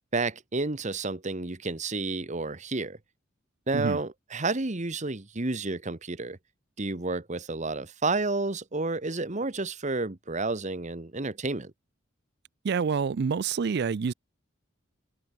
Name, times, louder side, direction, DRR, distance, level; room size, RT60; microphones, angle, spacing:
voice 1, 0.1-3.0 3.7-6.4 6.8-11.7, right 3 dB, 35° right, 1.3 m, -30 dB
voice 2, 12.6-14.1, right 5 dB, 55° right, 0.4 m, -27 dB
head